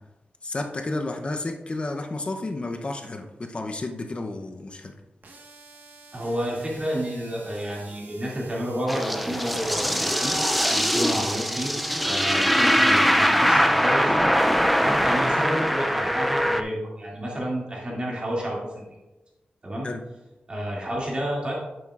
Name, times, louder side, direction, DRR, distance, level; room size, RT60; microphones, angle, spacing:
voice 1, 0.4-5.0 19.8-20.0, left 2 dB, 35° left, 5 dB, 0.7 m, -31 dB
sound 1, 5.2-10.5, right 3 dB, 90° right, 1.4 m, -49 dB
voice 2, 6.1-10.4 10.7-11.8 12.0-14.1 14.8-18.8 19.6-19.9 20.5-21.6, equal, 30° right, -4 dB, 2.4 m, -30 dB
sound 2, 8.9-16.6, equal, ahead, 0.4 m, -22 dB
9.5 x 7.7 x 2.5 m, 1.1 s
wide cardioid pair, 155°, 3 cm